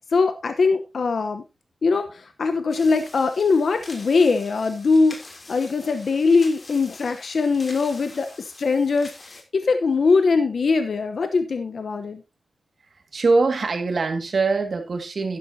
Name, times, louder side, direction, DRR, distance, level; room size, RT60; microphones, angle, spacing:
voice 1, 0.1-1.4 1.8-12.2, left 4 dB, 90° left, 8 dB, 1.0 m, -21 dB
sound 1, 2.7-9.4, left 2 dB, 50° left, 3.1 m, -45 dB
voice 2, 13.1-15.4, right 3 dB, 75° right, 6 dB, 2.0 m, -22 dB
12.0 x 10.5 x 2.8 m, 0.26 s
wide cardioid pair, 70°, 0 cm